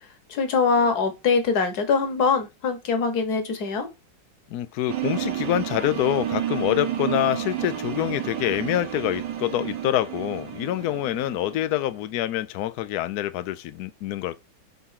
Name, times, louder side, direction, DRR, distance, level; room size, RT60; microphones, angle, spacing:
voice 1, 0.3-3.9, left 5 dB, 55° left, 1.6 m, -23 dB
voice 2, 4.5-14.4, left 13 dB, 85° left, 0.8 m, -26 dB
sound 1, 4.9-11.9, right 11 dB, 65° right, 1.4 m, -31 dB
5.5 x 3.6 x 5.7 m
omnidirectional pair, 2.2 m